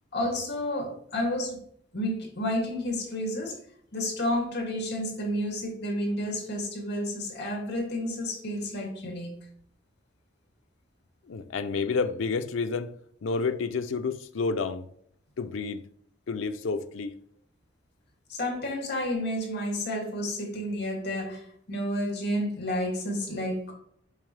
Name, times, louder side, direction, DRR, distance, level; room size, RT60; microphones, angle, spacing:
voice 1, 0.1-1.6 1.9-3.6 3.9-9.4 18.3-23.7, left 1 dB, 55° left, 2.4 m, -30 dB
voice 2, 11.3-12.9 13.2-14.9 15.4-15.8 16.3-17.1, left 4 dB, 90° left, 0.5 m, -29 dB
7.3 x 5.3 x 3.3 m
head